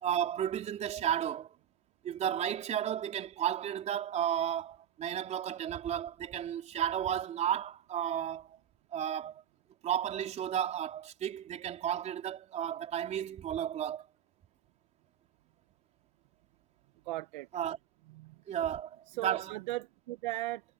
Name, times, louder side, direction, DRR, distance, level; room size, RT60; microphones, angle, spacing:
voice 1, 0.0-1.6 2.0-8.6 8.9-9.4 9.8-14.1 17.5-17.8 18.5-19.6, right 10 dB, 15° right, 3.9 m, -33 dB
voice 2, 17.1-17.5 18.2-18.3 19.1-20.6, right 17 dB, 35° right, 1.4 m, -37 dB
hypercardioid pair, 145°, 42 cm